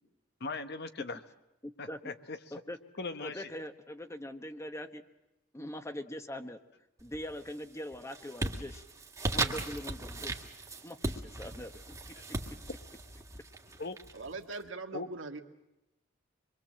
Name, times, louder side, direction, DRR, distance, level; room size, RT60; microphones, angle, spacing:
voice 1, 0.4-1.2 1.8-2.6 3.0-3.5 13.8-14.0 14.9-15.1, left 3 dB, 60° left, 9 dB, 1.2 m, -39 dB
voice 2, 1.6-2.1 2.5-2.8 3.2-5.0 5.5-6.6 7.0-8.8 9.3-10.5 10.8-12.0, left 1 dB, 15° left, 8 dB, 1.2 m, -42 dB
sound 1, 7.0-7.5 7.9-14.5, right 2 dB, 15° right, 1.9 m, -37 dB
voice 3, 14.1-15.4, right 3 dB, 85° right, 4 dB, 1.9 m, -41 dB
25.0 x 23.0 x 7.6 m, 0.95 s
head